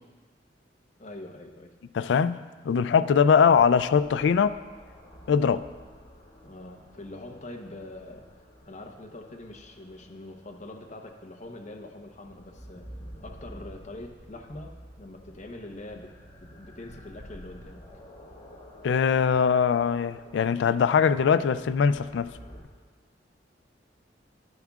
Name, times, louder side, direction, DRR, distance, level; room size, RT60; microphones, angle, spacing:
voice 1, 1.0-1.7 6.4-8.2 8.7-12.9 13.2-14.7 15.0-16.1 16.4-17.9, left 2 dB, 45° left, 3 dB, 0.9 m, -43 dB
voice 2, 1.9-2.4 2.7-4.6 5.3-5.6 18.8-22.3, left 6 dB, 90° left, 14 dB, 0.3 m, -22 dB
sound 1, 3.4-22.6, equal, 25° left, 1.8 m, -50 dB
11.0 x 10.5 x 2.4 m, 1.4 s
head